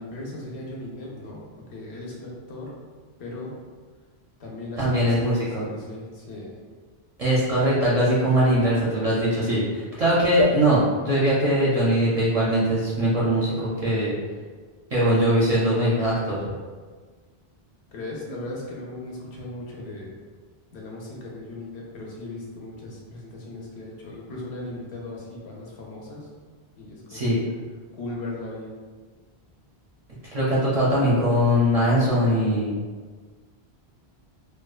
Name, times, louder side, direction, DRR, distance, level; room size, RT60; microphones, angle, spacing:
voice 1, 0.0-1.4 1.7-2.7 3.2-3.6 4.4-5.2 5.5-6.6 17.9-20.1 20.7-26.3 26.8-27.4 27.9-28.8, left 2 dB, 80° left, -3 dB, 0.9 m, -37 dB
voice 2, 4.8-5.6 7.2-14.1 14.9-16.4 27.1-27.4 30.3-32.7, equal, 50° right, -8 dB, 0.5 m, -21 dB
2.6 x 2.1 x 2.3 m, 1.5 s
omnidirectional pair, 1.1 m